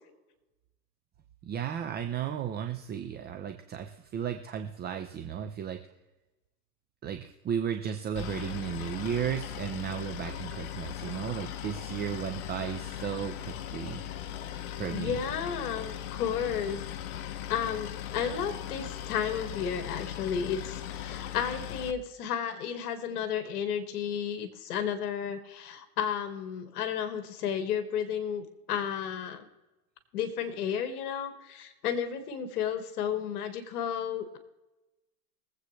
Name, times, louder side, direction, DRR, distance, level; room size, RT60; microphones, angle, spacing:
voice 1, 1.4-5.8 7.0-14.0 14.8-15.2, right 8 dB, 20° right, 6 dB, 0.7 m, -34 dB
Boat Water vehicle, 8.2-21.9, left 11 dB, 50° left, 1.1 m, -39 dB
voice 2, 14.9-16.8 17.1-29.5 30.1-34.4, left 8 dB, 65° left, 8 dB, 1.8 m, -33 dB
22.5 x 8.1 x 3.2 m, 1.0 s
hypercardioid pair, 125°, 48 cm